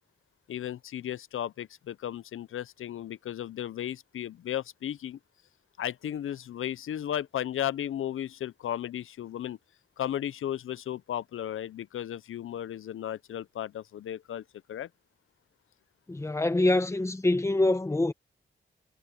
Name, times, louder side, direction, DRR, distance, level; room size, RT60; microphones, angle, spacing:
voice 1, 0.5-5.2 5.8-9.6 10.0-14.4 14.7-14.9, left 11 dB, 80° left, 0.5 m, -35 dB
voice 2, 16.1-18.1, left 2 dB, 15° left, 1.1 m, -25 dB
wide cardioid pair, 170°, 21 cm